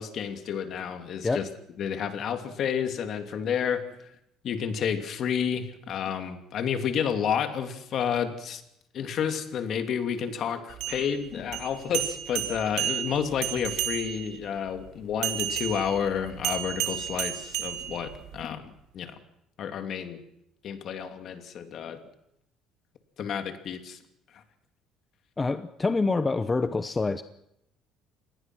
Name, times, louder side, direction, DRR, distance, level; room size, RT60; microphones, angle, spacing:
voice 1, 0.0-1.5 1.8-4.0 4.4-8.6 8.9-19.1 19.6-20.2 20.6-22.0 23.2-24.0, left 8 dB, 50° left, 7 dB, 2.7 m, -30 dB
sound 1, 10.7-14.4 15.2-18.4, right 12 dB, 75° right, 3.1 m, -32 dB
voice 2, 25.4-27.2, left 3 dB, 20° left, 11 dB, 0.9 m, -26 dB
27.0 x 20.0 x 6.2 m, 0.78 s
cardioid pair, 130°, 0 cm